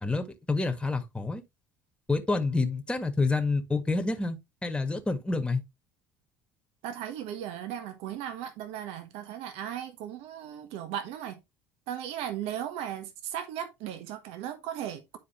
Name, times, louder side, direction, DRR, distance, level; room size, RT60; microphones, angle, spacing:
voice 1, 0.0-1.4 2.1-5.6, left 3 dB, 10° left, 1.6 m, -28 dB
voice 2, 6.8-11.4 11.9-15.2, right 10 dB, 65° right, 1.3 m, -37 dB
10.0 x 4.7 x 3.0 m
hypercardioid pair, 70°, 11 cm